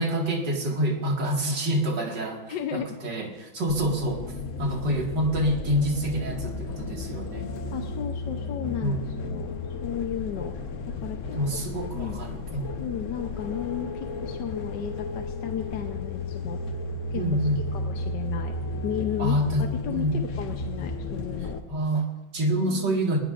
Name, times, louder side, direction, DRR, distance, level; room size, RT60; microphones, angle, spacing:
voice 1, 0.0-4.2 4.6-7.5 8.8-9.2 11.3-12.8 17.1-17.6 19.2-20.3 21.7-23.2, equal, 55° right, 0 dB, 2.5 m, -27 dB
voice 2, 2.5-3.0 4.9-5.0 7.7-9.5 9.8-10.6 10.8-11.6 11.9-12.2 12.8-16.6 17.1-17.2 17.7-18.5 18.8-19.4 19.8-21.6 22.7-23.0, left 9 dB, 65° left, 4 dB, 1.3 m, -34 dB
sound 1, 3.7-21.6, left 3 dB, 50° left, 1.0 m, -33 dB
19.5 x 19.5 x 2.5 m, 1.1 s
omnidirectional pair, 2.3 m